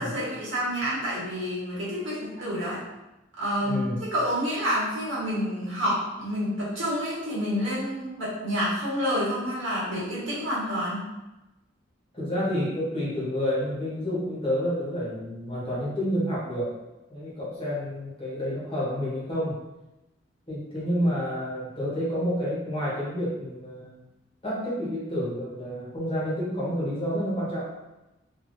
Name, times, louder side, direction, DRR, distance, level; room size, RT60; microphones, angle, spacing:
voice 1, 0.0-2.8 3.4-11.0, equal, 75° right, -7 dB, 1.3 m, -28 dB
voice 2, 3.6-4.0 12.1-16.7 17.1-19.6 20.5-24.0 24.4-27.7, equal, 30° left, -8 dB, 1.1 m, -29 dB
3.2 x 2.7 x 2.6 m, 0.99 s
head